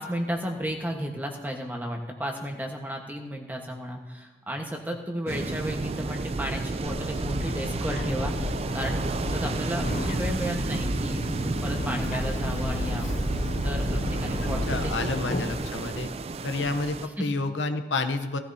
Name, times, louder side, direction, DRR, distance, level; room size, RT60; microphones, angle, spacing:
voice 1, 0.0-13.2 13.6-15.1 17.2-17.3, equal, 10° right, 1 dB, 1.3 m, -34 dB
sound 1, 5.3-17.1, right 3 dB, 35° right, 0.3 m, -31 dB
Bird, 6.9-15.7, left 2 dB, 40° left, 0.4 m, -33 dB
voice 2, 14.4-16.1 16.4-18.4, left 3 dB, 85° left, 7 dB, 0.8 m, -29 dB
17.5 x 13.5 x 2.8 m, 1.2 s
head